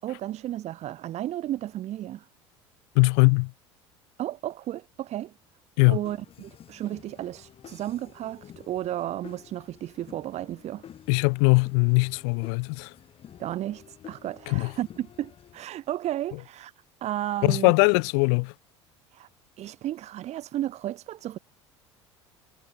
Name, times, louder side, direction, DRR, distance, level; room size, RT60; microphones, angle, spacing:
voice 1, 0.0-2.3 4.2-5.3 5.9-10.9 13.4-16.7 17.0-17.7 19.1-19.3 19.6-21.4, right 13 dB, 45° right, 5.3 m, -33 dB
voice 2, 3.0-3.5 5.8-6.0 11.1-12.9 14.5-14.7 17.5-18.5, left 40 dB or more, 60° left, 0.5 m, -21 dB
sound 1, 5.8-15.6, left 9 dB, 40° left, 5.2 m, -50 dB
figure-of-eight pair, 65°, 15 cm